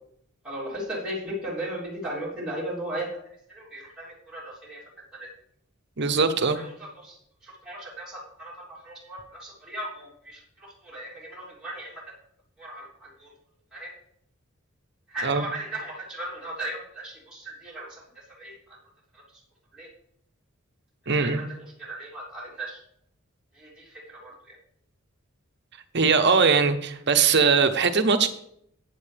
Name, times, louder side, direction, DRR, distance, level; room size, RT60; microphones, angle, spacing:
voice 1, 0.4-3.1 3.5-4.8 5.1-5.3 6.5-7.2 7.4-12.0 12.6-13.3 13.7-13.9 15.1-18.8 19.1-19.2 19.7-19.9 21.0-21.5 21.8-22.8 23.5-24.6, right 1 dB, 5° right, -8 dB, 3.5 m, -37 dB
voice 2, 6.0-6.6 15.2-15.4 21.1-21.4 25.9-28.3, right 5 dB, 55° right, 8 dB, 1.1 m, -21 dB
14.5 x 9.4 x 3.5 m, 0.71 s
head